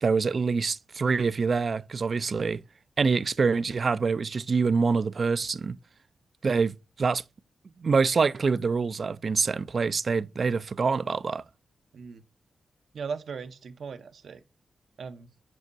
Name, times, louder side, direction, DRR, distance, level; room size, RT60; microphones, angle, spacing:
voice 1, 0.0-2.6 3.0-5.8 6.4-7.2 7.8-11.4, right 4 dB, 45° right, 0.3 m, -25 dB
voice 2, 12.9-14.4 15.0-15.3, right 5 dB, 70° right, 0.7 m, -38 dB
7.6 x 5.9 x 2.6 m
wide cardioid pair, 120°, 0 cm